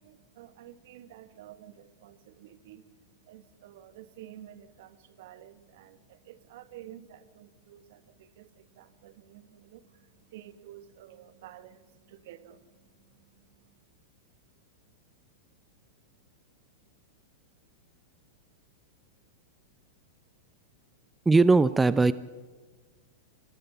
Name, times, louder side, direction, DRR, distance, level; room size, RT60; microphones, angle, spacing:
voice 1, 0.0-13.8, right 12 dB, 60° right, 12 dB, 1.4 m, -51 dB
voice 2, 21.3-22.1, right 3 dB, 10° right, 16 dB, 0.6 m, -19 dB
24.5 x 18.5 x 5.8 m, 1.4 s
hypercardioid pair, 100°, 0 cm